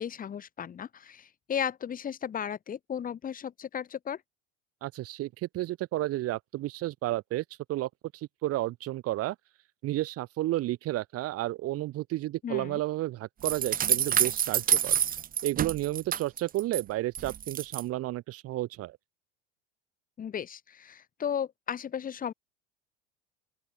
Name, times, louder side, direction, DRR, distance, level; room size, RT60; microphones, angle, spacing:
voice 1, 0.0-4.2 12.4-12.8 20.2-22.3, left 8 dB, 30° left, 1.4 m, -35 dB
voice 2, 4.8-9.4 9.8-15.0 15.4-19.0, right 16 dB, 50° right, 2.4 m, -32 dB
sound 1, 13.4-16.8 17.1-17.8, right 9 dB, 30° right, 0.9 m, -28 dB
open air
supercardioid pair, 100°, 30 cm